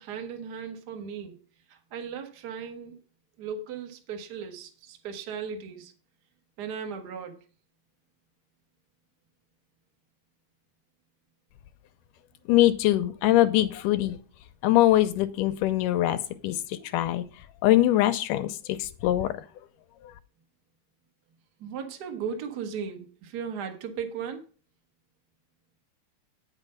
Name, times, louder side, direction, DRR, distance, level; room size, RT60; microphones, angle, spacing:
voice 1, 0.0-1.4 1.7-3.0 3.4-5.9 6.6-7.4 21.6-24.4, right 6 dB, 55° right, 4 dB, 1.1 m, -37 dB
voice 2, 12.5-14.2 14.6-17.2 17.6-19.4, left 14 dB, 80° left, 10 dB, 2.1 m, -23 dB
9.1 x 5.8 x 5.4 m, 0.38 s
omnidirectional pair, 3.8 m